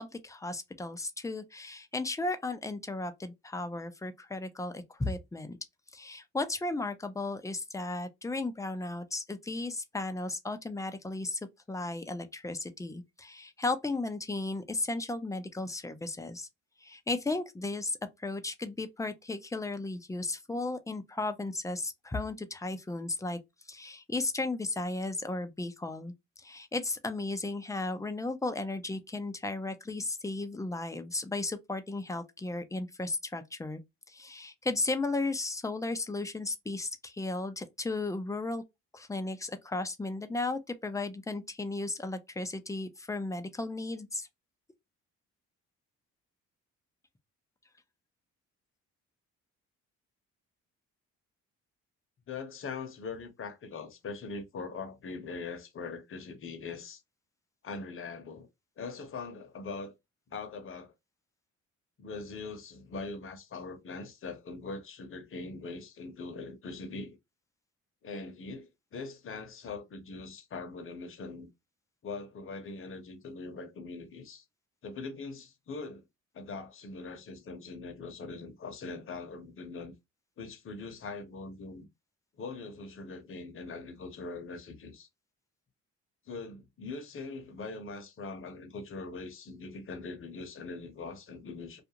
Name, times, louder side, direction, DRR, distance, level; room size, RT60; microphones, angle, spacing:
voice 1, 0.0-5.6 5.9-11.4 11.7-16.5 16.8-23.4 23.7-26.1 26.4-33.8 34.1-38.6 38.9-44.3, left 2 dB, 10° left, 0.5 m, -35 dB
voice 2, 52.3-57.0 57.6-58.5 58.8-59.9 60.3-60.9 62.0-67.2 68.0-71.5 72.0-74.4 74.8-76.0 76.3-79.9 80.4-81.9 82.4-85.1 86.3-91.8, left 4 dB, 45° left, 0.9 m, -42 dB
2.4 x 2.4 x 2.8 m
cardioid pair, 90°, 30 cm